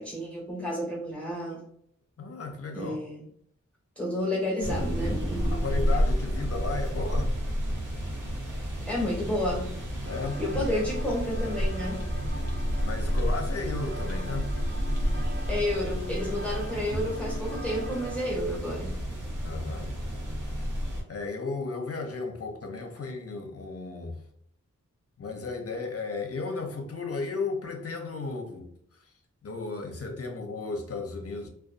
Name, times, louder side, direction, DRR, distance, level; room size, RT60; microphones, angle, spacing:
voice 1, 0.0-1.6 2.7-3.2 4.0-6.0 8.9-9.8 10.4-12.0 15.5-19.0, left 1 dB, 5° left, 1.0 m, -31 dB
voice 2, 2.2-3.0 5.4-7.4 10.0-10.4 12.8-14.5 19.4-19.9 21.1-24.2 25.2-29.1 29.4-31.5, left 3 dB, 50° left, 0.6 m, -34 dB
sound 1, 4.6-21.0, equal, 80° right, 0.8 m, -30 dB
sound 2, 10.0-18.2, right 1 dB, 35° right, 0.5 m, -43 dB
2.5 x 2.3 x 2.4 m
wide cardioid pair, 65°, 31 cm